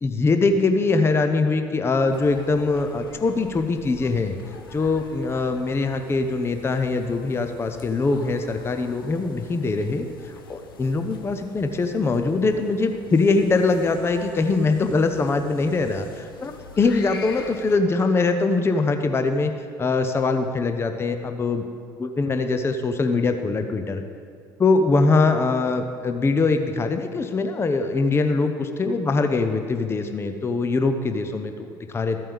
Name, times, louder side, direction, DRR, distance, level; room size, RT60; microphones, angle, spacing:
voice 1, 0.0-4.3 4.7-19.5 19.8-21.6 22.0-24.0 24.6-32.2, left 3 dB, 20° left, 7 dB, 0.7 m, -22 dB
sound 1, 2.1-17.8, left 4 dB, 75° left, 0.7 m, -44 dB
14.5 x 8.6 x 3.5 m, 2.3 s
figure-of-eight pair, 60°, 12 cm